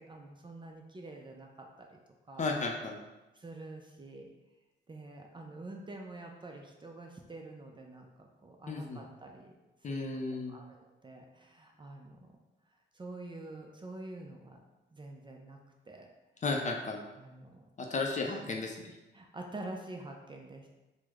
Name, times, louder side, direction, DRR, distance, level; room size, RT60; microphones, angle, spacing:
voice 1, 0.0-2.0 2.3-2.5 3.3-4.3 4.9-9.5 9.9-10.1 10.5-12.4 12.9-14.6 14.9-15.6 15.9-16.1 17.2-17.6 18.3-18.4 19.1-20.7, right 2 dB, 25° right, 2 dB, 0.4 m, -47 dB
voice 2, 2.4-3.0 8.7-9.0 9.8-10.6 16.4-17.0 17.8-19.0, left 3 dB, 35° left, 2 dB, 0.4 m, -34 dB
3.0 x 2.0 x 3.4 m, 1.1 s
cardioid pair, 95°, 21 cm